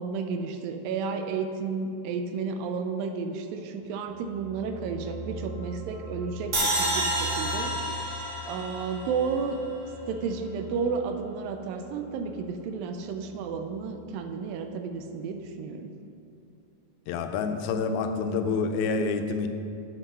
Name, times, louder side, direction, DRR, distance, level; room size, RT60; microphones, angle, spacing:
voice 1, 0.0-9.6 10.1-15.9, right 5 dB, 80° right, 6 dB, 2.2 m, -32 dB
sound 1, 3.8-14.5 14.8-15.0, right 1 dB, 65° left, 1.3 m, -43 dB
sound 2, 6.5-9.7, right 1 dB, 65° right, 0.9 m, -29 dB
voice 2, 17.1-19.5, left 4 dB, 90° left, 7 dB, 2.4 m, -27 dB
7.6 x 6.1 x 5.5 m, 2.6 s
omnidirectional pair, 4.1 m